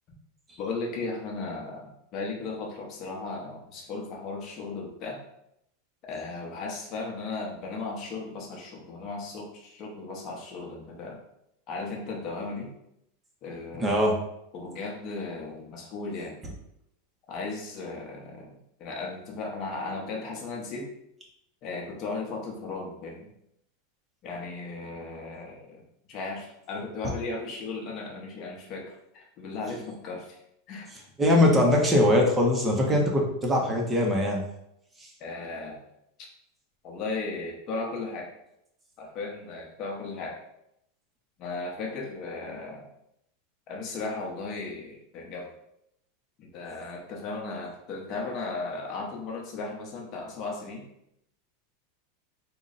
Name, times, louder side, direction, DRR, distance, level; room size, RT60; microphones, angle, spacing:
voice 1, 0.6-5.2 6.0-11.2 11.7-12.7 13.4-13.9 14.5-16.4 17.3-20.9 21.6-23.3 24.2-25.8 26.1-30.4 30.7-30.9 35.2-35.8 36.8-38.3 39.0-40.4 41.4-42.9 43.7-45.5 46.4-50.8, left 3 dB, 30° left, -1 dB, 0.8 m, -36 dB
voice 2, 13.8-14.2 31.2-34.4, left 1 dB, 10° right, 0 dB, 0.6 m, -22 dB
3.8 x 2.1 x 3.8 m, 0.78 s
supercardioid pair, 170°, 0 cm